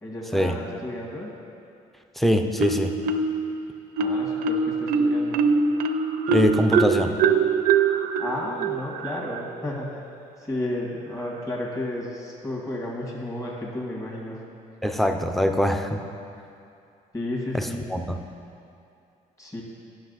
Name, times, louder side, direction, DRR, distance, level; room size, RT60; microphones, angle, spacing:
voice 1, 0.0-1.3 4.0-5.4 8.2-10.1 10.4-14.4 17.1-17.8 19.4-19.6, left 1 dB, 20° left, -3 dB, 1.8 m, -32 dB
voice 2, 2.2-2.9 6.3-7.2 14.8-16.0 17.5-18.2, equal, ahead, 5 dB, 0.5 m, -23 dB
Marimba xylophone, 2.6-3.5 4.0-9.5, right 4 dB, 80° right, 0.5 m, -23 dB
11.0 x 5.5 x 4.0 m, 2.5 s
cardioid pair, 105°, 15 cm